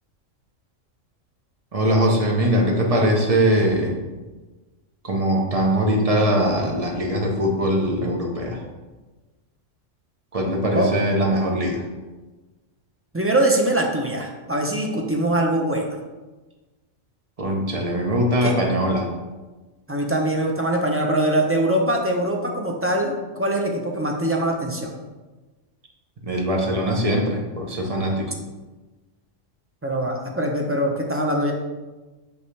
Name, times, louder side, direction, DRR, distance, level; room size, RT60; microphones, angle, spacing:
voice 1, 1.7-3.9 5.0-8.6 10.3-11.8 17.4-19.1 26.2-28.3, equal, 30° right, 0 dB, 1.0 m, -21 dB
voice 2, 13.1-15.9 18.4-18.5 19.9-24.9 29.8-31.5, right 1 dB, 15° right, 0 dB, 0.5 m, -22 dB
6.5 x 5.4 x 3.3 m, 1.2 s
omnidirectional pair, 1.4 m